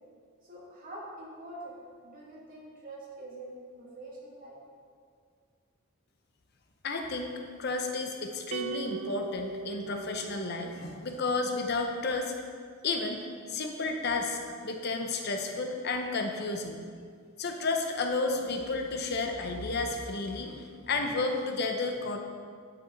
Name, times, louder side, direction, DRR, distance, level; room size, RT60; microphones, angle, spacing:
voice 1, 0.4-4.6, right 1 dB, 40° right, -5 dB, 2.2 m, -45 dB
voice 2, 6.8-7.3 7.6-12.3 12.8-16.8 17.4-22.2, left 3 dB, 50° left, 4 dB, 0.7 m, -32 dB
sound 1, 8.5-11.0, right 6 dB, 70° right, 0.3 m, -39 dB
10.5 x 6.9 x 3.8 m, 2.1 s
head